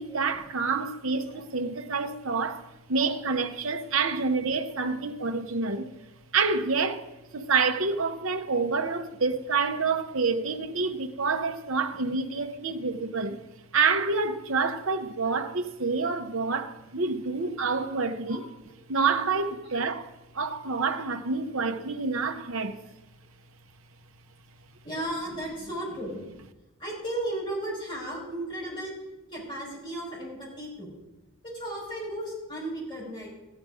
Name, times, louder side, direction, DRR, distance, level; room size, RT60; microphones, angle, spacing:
voice 1, 0.0-2.6 2.9-5.9 6.3-7.1 7.3-13.4 13.7-18.5 18.9-20.1 20.3-22.8, right 4 dB, 65° right, 0.9 m, -28 dB
voice 2, 24.8-26.2 26.8-28.9 29.3-30.9 31.5-33.3, right 1 dB, 20° left, 5.5 m, -35 dB
14.0 x 10.0 x 4.9 m
head